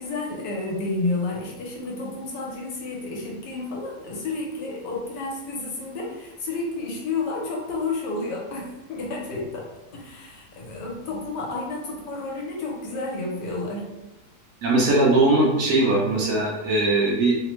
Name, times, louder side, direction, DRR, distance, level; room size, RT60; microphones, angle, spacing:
voice 1, 0.0-9.6 9.9-13.9, left 3 dB, 85° left, -2 dB, 1.3 m, -31 dB
voice 2, 14.6-17.3, right 2 dB, 65° right, -3 dB, 1.0 m, -20 dB
3.2 x 2.1 x 3.0 m, 1.0 s
omnidirectional pair, 1.8 m